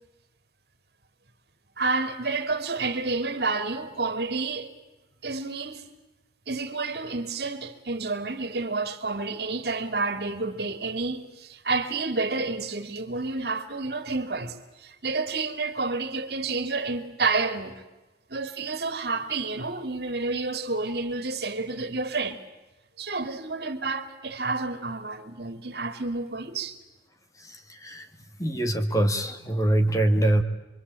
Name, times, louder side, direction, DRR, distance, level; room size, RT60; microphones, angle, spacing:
voice 1, 1.8-4.7 5.2-5.9 6.5-17.8 18.3-22.4 23.0-26.8, right 3 dB, 60° right, 2.7 m, -30 dB
voice 2, 27.7-28.0 28.4-30.4, right 1 dB, 20° left, 2.1 m, -23 dB
27.0 x 24.5 x 8.5 m
head